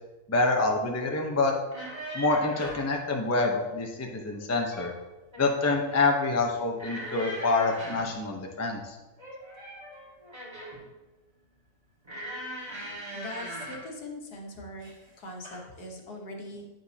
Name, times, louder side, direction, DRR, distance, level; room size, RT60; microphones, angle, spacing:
voice 1, 0.3-1.5 2.1-4.9 5.4-9.0, left 3 dB, 20° left, 1 dB, 0.5 m, -26 dB
sound 1, 1.6-2.9 4.4-5.0 5.3-5.8 6.8-8.2 9.2-10.9 12.0-13.9 14.8-15.1 15.4-15.6, equal, 15° right, 1.7 m, -40 dB
voice 2, 13.1-14.9 15.2-16.7, left 1 dB, 75° left, 1 dB, 1.8 m, -41 dB
9.1 x 6.7 x 2.8 m, 1.1 s
omnidirectional pair, 1.7 m